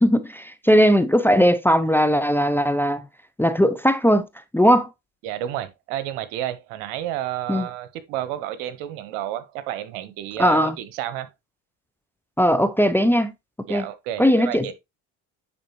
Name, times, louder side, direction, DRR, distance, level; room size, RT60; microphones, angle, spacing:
voice 1, 0.0-3.0 3.4-4.3 4.5-4.9 7.5-7.7 10.4-10.7 12.4-13.3 13.7-13.9 14.2-14.7, equal, 5° left, 0.5 m, -18 dB
voice 2, 5.2-11.3 13.7-14.7, right 12 dB, 80° right, 1.1 m, -31 dB
9.9 x 3.8 x 3.0 m
supercardioid pair, 80°, 39 cm